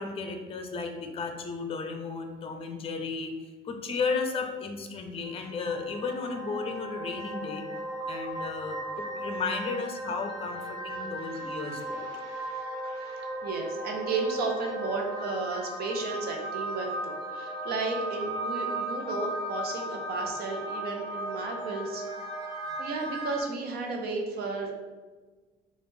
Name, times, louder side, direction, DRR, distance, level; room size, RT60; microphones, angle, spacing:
voice 1, 0.0-3.3 3.6-7.6 8.1-12.1, left 4 dB, 35° left, 5 dB, 0.5 m, -34 dB
sound 1, 5.3-23.4, right 1 dB, 20° right, 1.1 m, -36 dB
voice 2, 12.0-22.0 22.8-24.8, right 3 dB, 70° right, 2 dB, 0.8 m, -34 dB
4.1 x 2.5 x 3.6 m, 1.3 s
cardioid pair, 110°, 17 cm